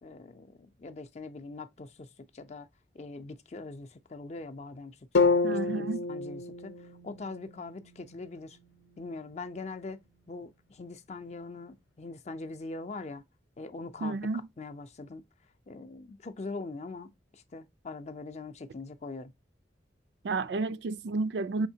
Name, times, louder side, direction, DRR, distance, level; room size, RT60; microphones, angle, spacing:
voice 1, 0.0-2.1 2.3-2.7 2.9-5.3 5.7-6.7 7.0-8.6 9.0-10.0 10.3-13.2 13.6-14.2 14.6-15.2 15.7-19.3, left 3 dB, 40° left, 0.5 m, -42 dB
sound 1, 5.1-9.2, left 4 dB, 80° left, 0.6 m, -30 dB
voice 2, 5.4-6.1 14.0-14.4 20.2-21.7, right 3 dB, 75° right, 0.4 m, -31 dB
5.1 x 3.4 x 2.7 m
head